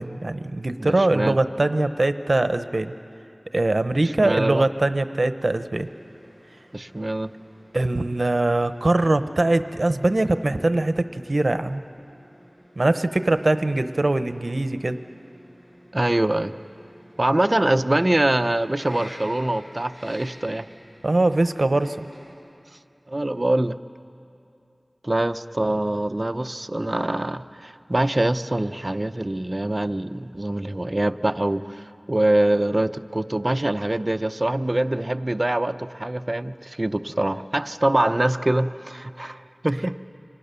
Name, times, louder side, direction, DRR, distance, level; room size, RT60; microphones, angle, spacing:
voice 1, 0.0-2.9 3.5-5.9 7.7-11.8 12.8-15.0 21.0-22.1, right 2 dB, 65° right, 11 dB, 0.9 m, -22 dB
voice 2, 0.8-1.4 4.2-4.7 6.7-7.3 15.9-16.5 17.2-20.7 23.1-23.8 25.0-40.0, right 1 dB, 40° right, 11 dB, 0.7 m, -24 dB
sound 1, 5.7-22.3, equal, 65° left, 7.9 m, -50 dB
30.0 x 26.0 x 6.9 m, 2.6 s
wide cardioid pair, 50°, 0 cm